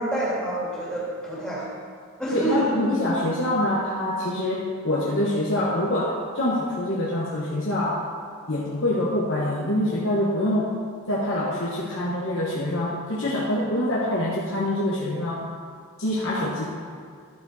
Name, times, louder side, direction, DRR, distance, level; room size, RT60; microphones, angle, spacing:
voice 1, 0.0-1.7 2.2-2.7, right 1 dB, 5° left, -7 dB, 2.3 m, -28 dB
voice 2, 2.3-8.1 8.5-10.7 11.1-15.5 16.0-16.6, left 1 dB, 60° left, -6 dB, 1.2 m, -25 dB
12.0 x 7.1 x 4.2 m, 2.1 s
head